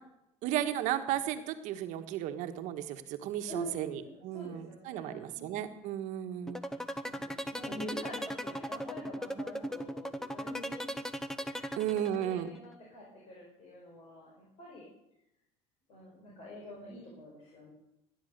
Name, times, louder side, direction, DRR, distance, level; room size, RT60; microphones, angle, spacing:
voice 1, 0.4-6.6 11.8-12.5, right 11 dB, 70° right, 7 dB, 1.4 m, -34 dB
voice 2, 3.5-5.7 6.5-11.0 11.4-14.9 15.9-17.7, left 1 dB, 55° left, -3 dB, 5.2 m, -46 dB
sound 1, 6.5-12.4, equal, 5° left, 1.0 m, -37 dB
17.5 x 10.0 x 6.7 m, 0.86 s
supercardioid pair, 105°, 13 cm